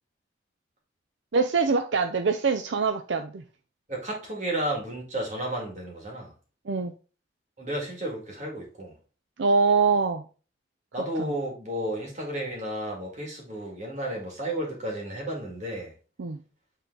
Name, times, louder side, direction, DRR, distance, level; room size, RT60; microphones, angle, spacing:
voice 1, 1.3-3.4 6.7-6.9 9.4-10.2 11.2-11.3 16.2-16.4, right 4 dB, 70° right, 0.5 m, -24 dB
voice 2, 3.9-6.3 7.6-8.9 10.9-15.9, right 1 dB, 40° right, 2.1 m, -32 dB
8.2 x 3.7 x 3.9 m
head